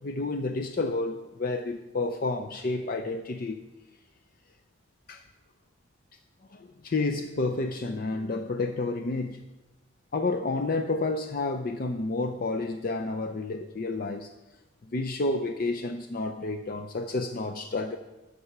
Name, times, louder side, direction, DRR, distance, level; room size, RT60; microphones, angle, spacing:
voice 1, 0.0-3.6 5.1-5.2 6.5-9.4 10.1-14.3 14.9-18.0, left 3 dB, 45° left, 6 dB, 0.5 m, -30 dB
11.0 x 6.8 x 5.9 m, 1.1 s
head